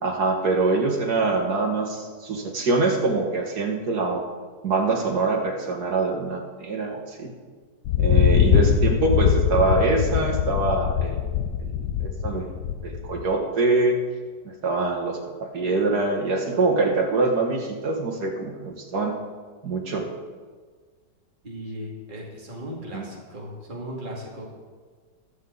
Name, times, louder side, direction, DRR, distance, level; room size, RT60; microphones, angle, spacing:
voice 1, 0.0-4.2 4.6-7.3 8.0-11.2 11.6-11.7 12.0-12.5 12.8-14.0 14.4-19.1 19.6-20.1 22.9-23.0, right 3 dB, 65° right, 2 dB, 2.2 m, -24 dB
Thunder, 7.9-13.3, left 9 dB, 70° left, 1.1 m, -22 dB
voice 2, 21.4-24.5, equal, 30° right, -3 dB, 2.6 m, -37 dB
23.5 x 7.8 x 4.0 m, 1.5 s
omnidirectional pair, 1.8 m